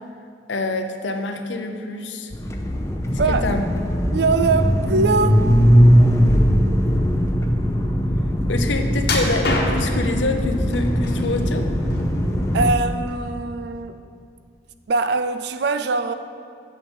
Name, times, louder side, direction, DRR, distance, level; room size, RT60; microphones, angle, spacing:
voice 1, 0.5-2.3 3.3-3.6 8.5-11.7, left 3 dB, 80° left, 0.7 m, -26 dB
sound 1, 2.3-12.7, equal, 15° left, 0.6 m, -19 dB
voice 2, 4.1-5.5 12.5-14.0 14.9-16.1, right 4 dB, 65° right, 0.4 m, -22 dB
sound 2, 9.0-10.1 10.7-11.4 11.8-12.7 13.1-13.3 13.8-13.9, left 2 dB, 60° left, 1.2 m, -26 dB
7.4 x 7.3 x 5.4 m
head